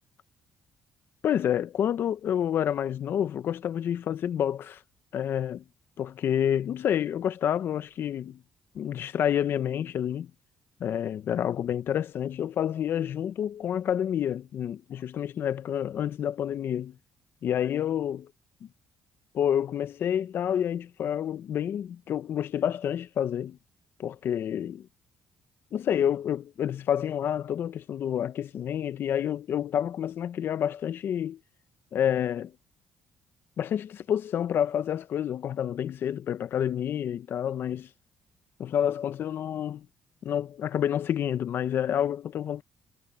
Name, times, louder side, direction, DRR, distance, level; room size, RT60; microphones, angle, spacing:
voice 1, 1.2-4.8 5.1-5.6 6.0-8.4 8.7-10.3 10.8-17.0 17.4-18.3 19.3-23.6 24.0-24.9 25.7-31.4 31.9-32.5 33.6-37.9 38.6-39.9 40.2-42.6, left 9 dB, 65° left, 1.1 m, -28 dB
supercardioid pair, 70°, 4 cm